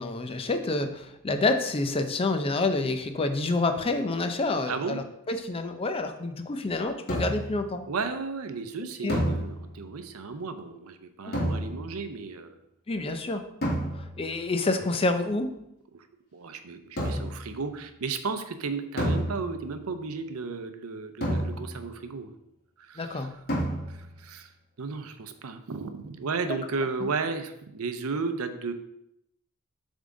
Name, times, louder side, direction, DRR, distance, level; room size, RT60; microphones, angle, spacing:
voice 1, 0.0-7.9 9.0-9.2 11.2-11.4 12.9-13.5 13.9-15.6 23.0-23.3, left 2 dB, 25° left, 7 dB, 0.5 m, -28 dB
voice 2, 4.7-5.0 7.9-12.5 15.9-16.1 16.3-22.3 22.8-23.3 23.9-24.5 24.8-28.7, right 4 dB, 80° right, 9 dB, 0.6 m, -34 dB
sound 1, 7.1-7.6 9.1-10.0 11.3-12.1 13.6-14.3 17.0-17.5 19.0-19.8 21.2-22.0 23.5-24.2, equal, 45° left, 1.7 m, -30 dB
7.2 x 3.6 x 3.8 m, 0.81 s
head